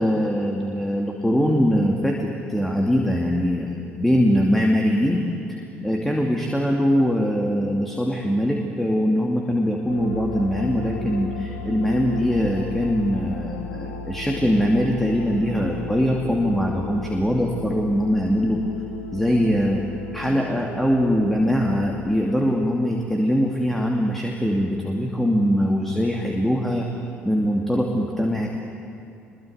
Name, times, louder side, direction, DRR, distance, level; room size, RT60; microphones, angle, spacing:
voice 1, 0.0-5.2 5.5-18.6 19.1-19.8 20.1-26.9 27.2-28.5, equal, 5° left, 0 dB, 2.6 m, -22 dB
sound 1, 9.9-22.0, left 3 dB, 75° left, 2.0 m, -35 dB
26.0 x 23.0 x 8.1 m, 2.6 s
figure-of-eight pair, 50°, 6 cm